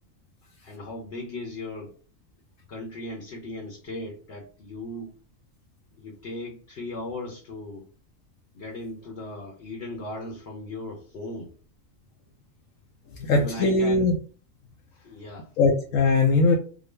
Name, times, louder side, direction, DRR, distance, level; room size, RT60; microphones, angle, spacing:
voice 1, 0.4-1.9 2.7-5.1 5.9-7.9 8.5-11.5 13.3-14.1 14.9-15.5, left 2 dB, 55° left, 1.0 m, -37 dB
voice 2, 13.2-14.1 15.6-16.6, left 3 dB, 80° left, 1.0 m, -20 dB
3.7 x 2.0 x 3.2 m
omnidirectional pair, 1.4 m